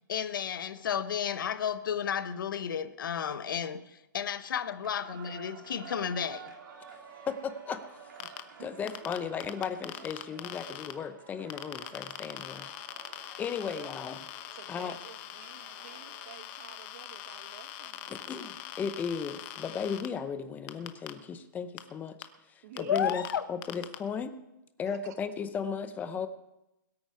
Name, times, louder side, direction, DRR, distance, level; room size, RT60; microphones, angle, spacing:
voice 1, 0.1-6.6 22.8-23.4, left 8 dB, 75° left, 1.0 m, -32 dB
sound 1, 4.8-16.3, right 6 dB, 70° right, 3.0 m, -51 dB
voice 2, 7.2-8.1 8.6-12.7 13.1-14.2 14.7-15.0 18.1-22.2 22.5-23.2 23.5-24.4 24.8-26.3, left 6 dB, 15° left, 0.8 m, -36 dB
sound 2, 8.2-8.4 8.9-10.9 11.5-20.1 20.7-21.1 21.8-21.9 22.2-22.3 22.8-23.3 23.6-24.0, left 14 dB, 35° left, 1.0 m, -42 dB
voice 3, 8.2-9.3 13.6-14.0 14.5-18.6 22.6-23.2 24.8-25.1, right 10 dB, 50° right, 1.5 m, -52 dB
21.5 x 8.9 x 4.7 m
hypercardioid pair, 145°, 11 cm